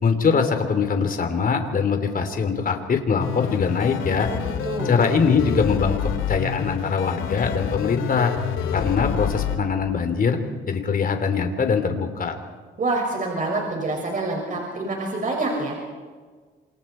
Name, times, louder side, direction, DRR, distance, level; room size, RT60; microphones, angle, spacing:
voice 1, 0.0-4.3 4.8-8.3 8.7-10.4 10.7-12.4, left 5 dB, 45° left, 6 dB, 3.4 m, -22 dB
sound 1, 3.2-9.6, left 8 dB, 85° left, 2.1 m, -28 dB
voice 2, 4.2-4.9 12.8-15.8, right 2 dB, 40° right, 0 dB, 5.8 m, -27 dB
27.5 x 27.5 x 4.5 m, 1.5 s
cardioid pair, 90°, 20 cm